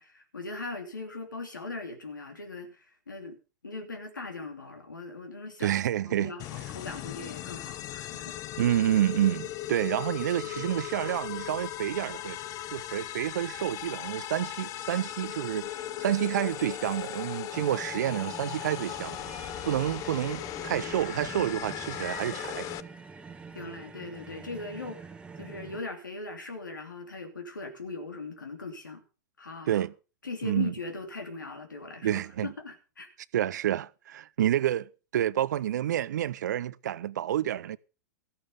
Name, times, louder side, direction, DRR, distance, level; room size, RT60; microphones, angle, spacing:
voice 1, 0.0-3.4 3.6-5.7 6.2-8.4 10.4-10.6 23.5-29.0 29.4-29.8 30.2-33.1, left 3 dB, 90° left, 3.1 m, -40 dB
voice 2, 5.6-6.3 8.6-12.4 12.7-19.2 19.6-22.7 29.7-29.9 30.4-30.7 32.0-32.5 33.3-37.8, right 11 dB, 70° right, 0.6 m, -29 dB
sound 1, 6.4-22.8, left 13 dB, 35° left, 0.7 m, -38 dB
sound 2, 17.5-25.8, right 4 dB, 10° right, 1.3 m, -45 dB
14.5 x 11.5 x 5.2 m
hypercardioid pair, 110°, 10 cm